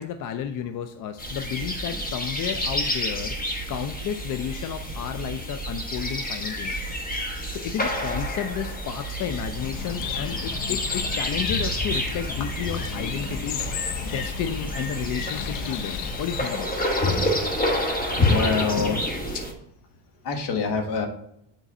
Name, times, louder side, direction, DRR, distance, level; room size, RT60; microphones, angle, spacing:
voice 1, 0.0-6.8 7.2-16.7, left 9 dB, 45° left, 8 dB, 0.5 m, -32 dB
sound 1, 1.2-19.5, left 1 dB, 20° left, 1.2 m, -29 dB
Bird, 9.6-16.5, left 9 dB, 85° left, 0.7 m, -33 dB
voice 2, 18.2-19.0 20.2-21.1, left 5 dB, 65° left, 4 dB, 1.5 m, -25 dB
7.3 x 3.9 x 4.2 m, 0.76 s
cardioid pair, 130°, 44 cm